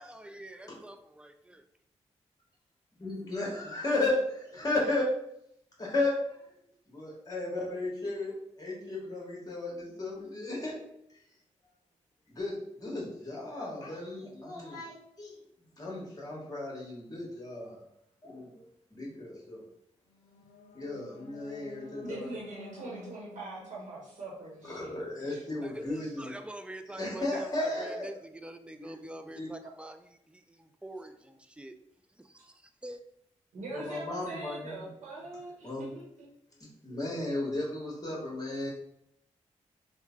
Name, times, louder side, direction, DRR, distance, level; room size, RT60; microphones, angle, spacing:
voice 1, 0.0-1.6 25.6-30.0 30.3-31.8 32.2-33.0, right 1 dB, 10° right, 0.4 m, -45 dB
voice 2, 3.0-5.2 5.8-6.6 6.9-11.0 12.3-15.4 15.8-17.8 18.2-18.6 18.9-19.6 20.7-22.3 24.7-26.3 26.9-28.1 28.8-29.0 29.3-29.5 33.7-34.9 35.6-35.9 36.6-38.7, left 2 dB, 30° left, 1.3 m, -34 dB
sound 1, 20.1-25.2, left 2 dB, 75° left, 0.7 m, -51 dB
voice 3, 22.0-25.0 25.3-25.4 26.0-26.1 33.5-36.3, right 2 dB, 75° right, 0.9 m, -43 dB
3.1 x 2.1 x 3.6 m
cardioid pair, 50°, 13 cm